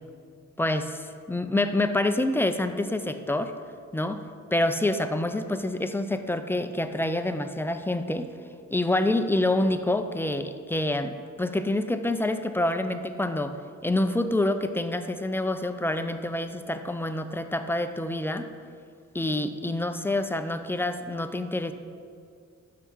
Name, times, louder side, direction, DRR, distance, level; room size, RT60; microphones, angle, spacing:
voice 1, 0.6-3.5 3.9-4.2 4.5-8.3 8.7-13.5 13.8-18.5 19.1-21.7, left 1 dB, 10° left, 9 dB, 0.3 m, -27 dB
5.7 x 5.5 x 6.2 m, 2.3 s
wide cardioid pair, 100°, 31 cm